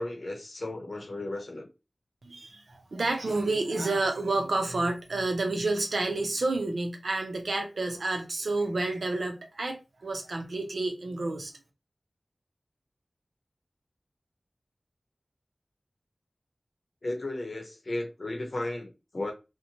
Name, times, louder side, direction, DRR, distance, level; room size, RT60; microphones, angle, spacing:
voice 1, 0.0-1.7 17.0-19.3, left 2 dB, 65° left, 0.7 m, -34 dB
voice 2, 2.2-11.5, right 2 dB, 90° right, 0.6 m, -29 dB
2.9 x 2.1 x 2.6 m
wide cardioid pair, 50°, 0 cm